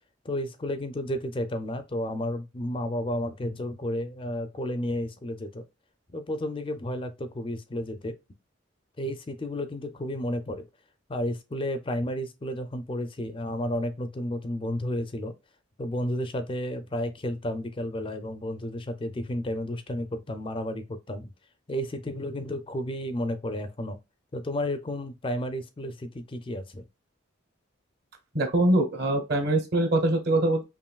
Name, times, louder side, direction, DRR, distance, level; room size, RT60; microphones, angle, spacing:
voice 1, 0.2-5.6 6.1-8.2 9.0-10.6 11.1-15.3 15.8-21.3 21.7-24.0 24.3-26.8, left 1 dB, 25° left, 0.4 m, -32 dB
voice 2, 28.3-30.6, right 1 dB, 55° right, 1.1 m, -23 dB
5.4 x 2.6 x 2.3 m
head